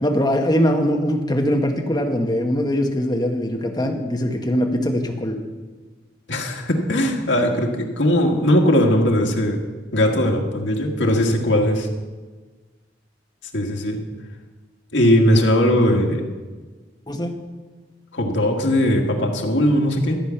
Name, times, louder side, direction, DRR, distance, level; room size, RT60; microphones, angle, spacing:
voice 1, 0.0-5.4 17.1-17.4, equal, 20° left, 3 dB, 1.2 m, -21 dB
voice 2, 6.3-9.6 9.9-11.9 13.5-14.0 14.9-16.3 18.1-20.2, equal, 80° left, 1 dB, 1.8 m, -19 dB
13.0 x 8.3 x 5.8 m, 1.3 s
head